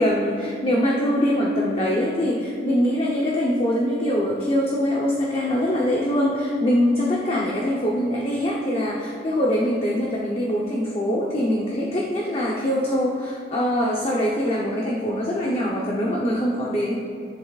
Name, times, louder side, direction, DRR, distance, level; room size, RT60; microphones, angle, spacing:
voice 1, 0.0-16.9, equal, 30° left, -3 dB, 0.8 m, -23 dB
13.5 x 10.5 x 2.4 m, 2.3 s
head